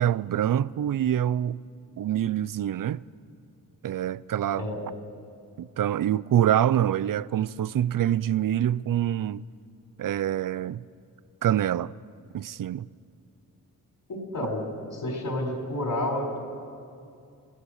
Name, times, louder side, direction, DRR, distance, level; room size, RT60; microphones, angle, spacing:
voice 1, 0.0-1.6 2.0-3.0 3.8-4.7 5.6-9.4 10.0-10.8 11.4-11.9 12.3-12.9, right 11 dB, 65° right, 0.5 m, -25 dB
voice 2, 14.1-14.6 14.9-16.4, left 1 dB, 60° left, 4.7 m, -30 dB
28.0 x 18.0 x 6.5 m
wide cardioid pair, 125°, 36 cm